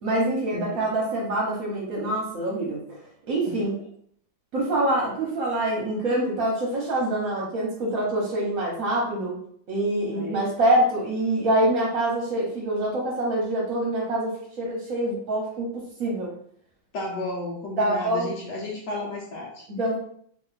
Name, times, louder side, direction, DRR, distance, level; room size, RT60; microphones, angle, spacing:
voice 1, 0.0-3.0 3.3-3.8 4.5-9.4 9.7-16.3 17.8-18.3 19.8-20.0, right 1 dB, 55° right, -3 dB, 1.1 m, -25 dB
voice 2, 0.5-0.8 3.4-3.6 10.1-10.4 16.9-19.6, left 2 dB, 70° left, -3 dB, 1.3 m, -33 dB
3.0 x 2.8 x 4.0 m, 0.65 s
omnidirectional pair, 2.1 m